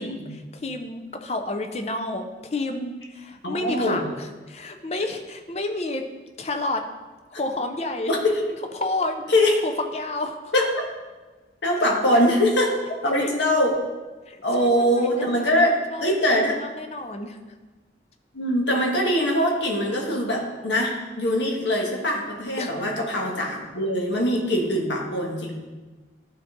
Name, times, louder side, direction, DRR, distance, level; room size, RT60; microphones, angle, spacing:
voice 1, 0.0-6.0 6.4-6.8 7.4-8.1 8.7-9.2 9.6-10.5 13.1-13.3 14.3-17.4 22.6-22.7, left 2 dB, 35° left, 5 dB, 0.6 m, -30 dB
voice 2, 3.4-4.1 4.9-5.0 8.1-8.4 9.3-9.5 10.5-10.7 11.6-12.8 13.0-13.8 14.4-16.6 18.3-25.6, left 1 dB, 85° left, -1 dB, 1.4 m, -22 dB
12.0 x 4.1 x 3.7 m, 1.2 s
head